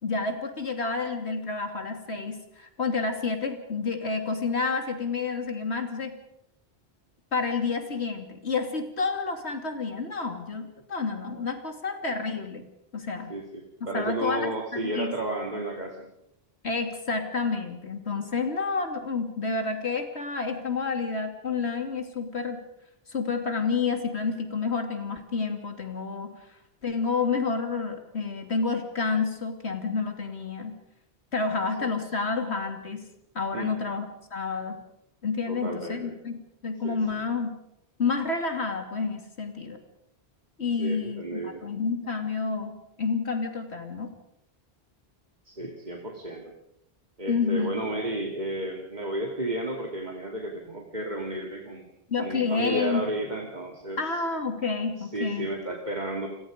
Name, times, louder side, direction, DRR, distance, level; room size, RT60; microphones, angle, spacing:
voice 1, 0.0-6.2 7.3-12.7 12.9-13.4 13.9-14.6 14.8-15.1 16.6-22.6 23.1-26.3 26.8-30.7 31.3-33.0 33.3-34.8 35.2-37.5 38.0-39.8 40.6-44.1 47.3-47.9 52.1-53.0 54.0-55.5, left 4 dB, 85° left, 6 dB, 2.9 m, -29 dB
voice 2, 13.3-16.1 31.5-32.2 33.5-33.7 35.5-36.1 36.8-37.0 40.8-41.6 45.5-46.5 47.2-51.9 52.2-54.2 55.0-56.3, right 1 dB, 45° right, 1 dB, 2.6 m, -33 dB
29.5 x 21.5 x 5.1 m, 0.83 s
omnidirectional pair, 1.1 m